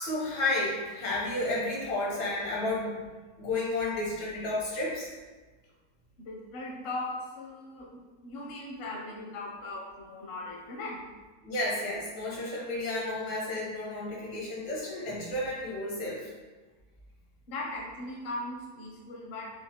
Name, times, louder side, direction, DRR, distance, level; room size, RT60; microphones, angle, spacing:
voice 1, 0.0-3.1 3.4-5.1 11.4-16.3, left 2 dB, 80° left, -5 dB, 1.6 m, -32 dB
voice 2, 6.2-7.9 8.2-11.0 17.5-19.5, left 2 dB, 55° left, -2 dB, 0.7 m, -38 dB
5.3 x 2.0 x 2.9 m, 1.3 s
omnidirectional pair, 1.8 m